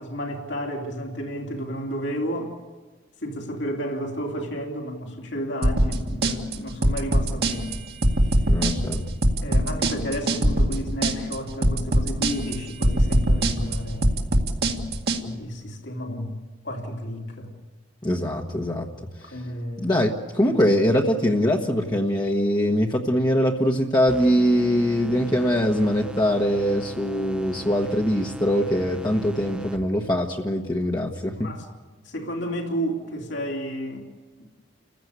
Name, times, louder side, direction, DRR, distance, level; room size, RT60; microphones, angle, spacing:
voice 1, 0.0-2.5 3.2-7.8 9.4-14.2 15.2-16.4 16.6-17.5 19.3-19.9 20.5-20.6 31.4-31.7 32.0-34.0, equal, 70° left, 1 dB, 3.2 m, -32 dB
sound 1, 5.6-15.2, right 1 dB, 60° right, 2.0 m, -22 dB
voice 2, 8.5-9.0 18.0-18.9 19.8-31.5, equal, 25° left, -1 dB, 1.3 m, -22 dB
sound 2, 24.1-30.1, right 1 dB, 5° right, 1.0 m, -38 dB
30.0 x 15.5 x 8.2 m, 1.3 s
head